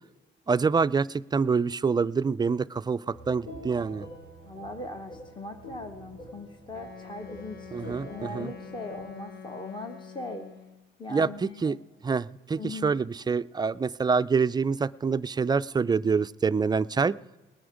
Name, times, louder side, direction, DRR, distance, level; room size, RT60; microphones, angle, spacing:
voice 1, 0.5-4.1 7.7-8.5 11.1-11.8 12.0-17.2, right 5 dB, 20° right, 16 dB, 0.3 m, -26 dB
sound 1, 3.1-9.2, right 1 dB, 85° left, 4.7 m, -46 dB
voice 2, 4.5-10.5 11.0-11.8 12.6-12.9, left 2 dB, 25° left, 6 dB, 1.1 m, -40 dB
Wind instrument woodwind instrument, 6.7-10.9, left 6 dB, 55° left, 1.2 m, -46 dB
20.0 x 9.4 x 5.0 m, 1.2 s
cardioid pair, 90°, 20 cm